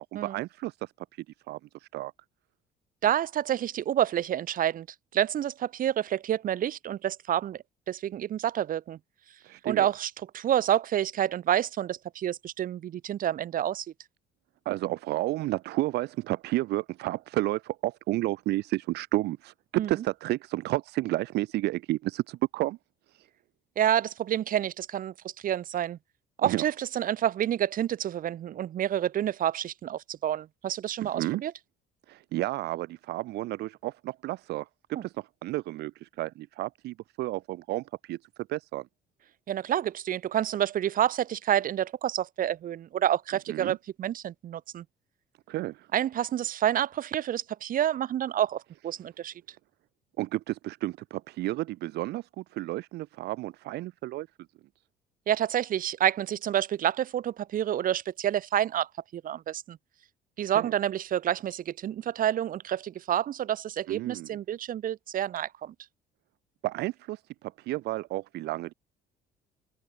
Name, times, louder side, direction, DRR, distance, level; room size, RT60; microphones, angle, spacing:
voice 1, 0.1-2.1 9.4-9.9 14.7-22.8 23.1-23.3 26.4-26.6 31.0-31.4 32.1-38.2 38.5-38.9 43.5-43.8 45.5-45.9 50.2-54.3 60.5-60.7 63.9-64.4 66.6-68.7, right 17 dB, 80° right, 1.7 m, -32 dB
voice 2, 3.0-4.9 5.1-9.0 9.6-13.8 19.7-19.9 23.8-25.1 25.4-26.0 26.4-31.5 39.5-44.8 45.9-49.3 55.3-59.8 60.4-65.7, right 11 dB, 55° right, 1.5 m, -28 dB
cardioid pair, 110°, 17 cm